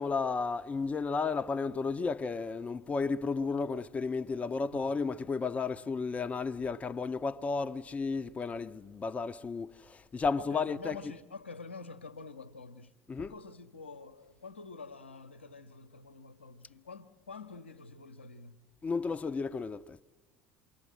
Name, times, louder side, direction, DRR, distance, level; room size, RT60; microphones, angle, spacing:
voice 1, 0.0-11.0 13.1-13.3 18.8-20.0, left 4 dB, 20° left, 0.8 m, -33 dB
voice 2, 10.4-18.6, left 4 dB, 80° left, 0.9 m, -48 dB
28.5 x 24.0 x 7.5 m
figure-of-eight pair, 65°, 6 cm